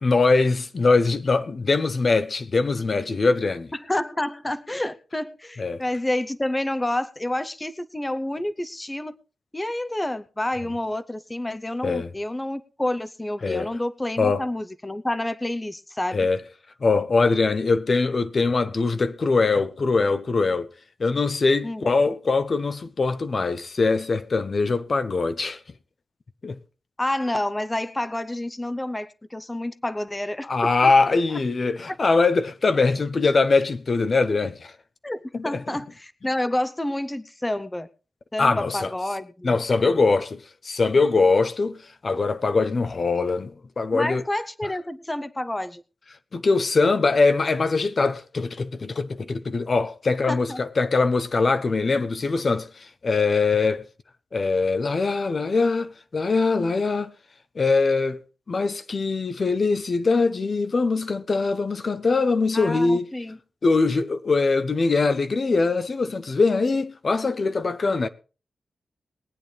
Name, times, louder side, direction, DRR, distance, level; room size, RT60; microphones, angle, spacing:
voice 1, 0.0-3.7 5.6-5.8 11.8-12.1 13.4-13.7 14.2-14.4 16.1-16.4 16.8-20.7 21.0-25.6 26.4-26.6 30.5-34.7 35.5-35.6 38.4-38.8 39.4-41.8 42.0-44.2 46.3-53.9 54.3-57.1 57.6-58.2 58.5-63.1 63.6-68.1, left 3 dB, 50° left, 0.7 m, -22 dB
voice 2, 3.7-9.1 9.5-16.3 21.6-21.9 27.0-31.4 35.0-37.9 38.3-39.6 43.9-45.8 50.3-50.6 62.5-63.4, left 1 dB, 15° left, 0.7 m, -29 dB
22.0 x 8.9 x 3.3 m
wide cardioid pair, 95°, 0 cm